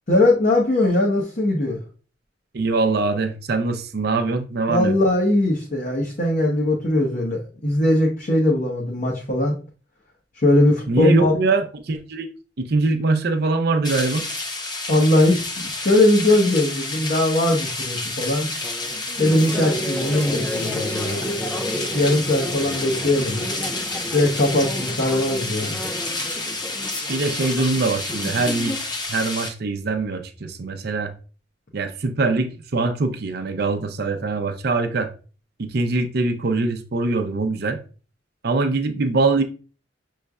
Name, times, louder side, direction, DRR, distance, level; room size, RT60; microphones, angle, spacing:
voice 1, 0.1-1.8 4.7-9.6 10.3-11.3 14.9-18.5 19.2-21.3 21.7-23.5 24.1-25.8, left 1 dB, 45° left, 0.9 m, -20 dB
voice 2, 2.5-4.9 10.9-12.3 12.6-14.3 27.1-28.8 29.1-31.1 31.7-35.1 35.6-37.8 38.4-39.4, right 3 dB, 60° right, 0.6 m, -23 dB
sound 1, 13.8-29.5, left 2 dB, 25° left, 0.7 m, -30 dB
sound 2, 18.5-29.0, equal, 10° left, 0.3 m, -32 dB
6.5 x 3.2 x 2.3 m
head